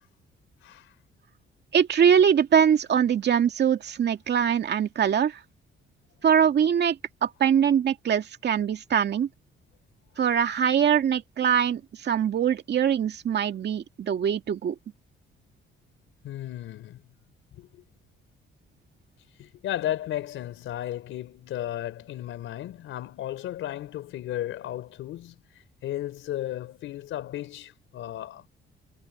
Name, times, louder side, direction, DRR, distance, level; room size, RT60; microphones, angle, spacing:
voice 1, 1.7-5.4 6.2-7.0 7.2-9.3 10.2-14.7, right 8 dB, 60° right, 2.3 m, -22 dB
voice 2, 16.2-17.0 17.6-17.8 19.4-25.4 25.8-28.5, left 13 dB, 85° left, 4.4 m, -34 dB
cardioid pair, 90°, 20 cm